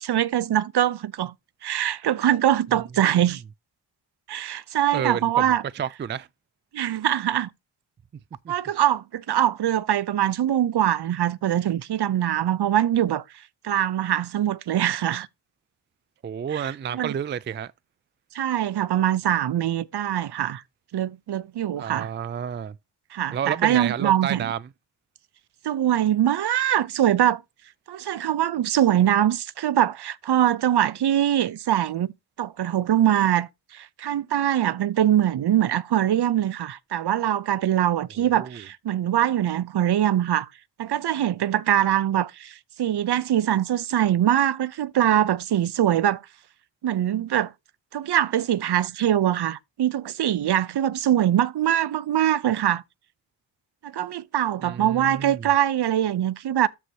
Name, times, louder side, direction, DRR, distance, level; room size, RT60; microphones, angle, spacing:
voice 1, 0.0-1.3 1.6-3.4 4.3-5.6 6.7-7.5 8.5-13.2 13.6-15.3 16.5-17.1 18.3-20.6 20.9-22.1 23.1-24.4 25.6-27.4 27.9-32.1 32.4-40.5 40.8-46.2 46.8-47.5 47.9-52.8 53.8-56.7, right 11 dB, 55° right, 0.7 m, -23 dB
voice 2, 4.9-6.3 8.4-8.5 16.2-17.7 21.8-22.8 23.3-24.6 38.2-38.6 54.6-55.5, right 8 dB, 25° right, 0.3 m, -30 dB
13.0 x 4.6 x 2.8 m
cardioid pair, 90°, 47 cm